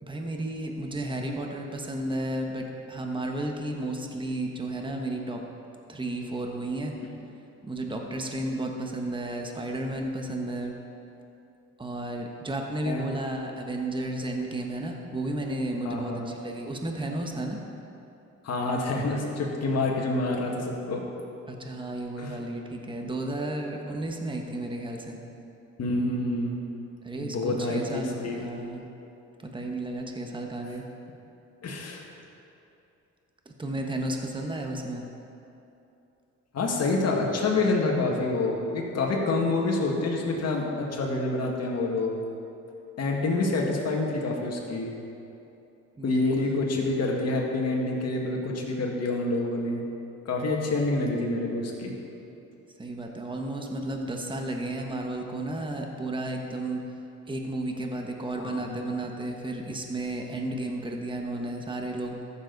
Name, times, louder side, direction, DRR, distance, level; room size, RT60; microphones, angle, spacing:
voice 1, 0.0-5.4 5.9-6.9 7.6-10.8 11.8-17.6 21.5-25.2 27.0-28.8 29.4-30.8 33.4-35.0 46.0-46.2 52.8-56.8 57.2-62.2, right 1 dB, 15° right, 2 dB, 1.2 m, -33 dB
voice 2, 15.8-16.3 18.4-21.1 22.2-22.4 25.8-26.6 27.2-28.4 31.6-32.1 36.5-42.2 43.0-44.9 46.0-49.8 50.3-52.0 58.4-58.8, left 2 dB, 55° left, -1 dB, 1.9 m, -27 dB
14.0 x 7.2 x 4.0 m, 2.8 s
cardioid pair, 90°, 30 cm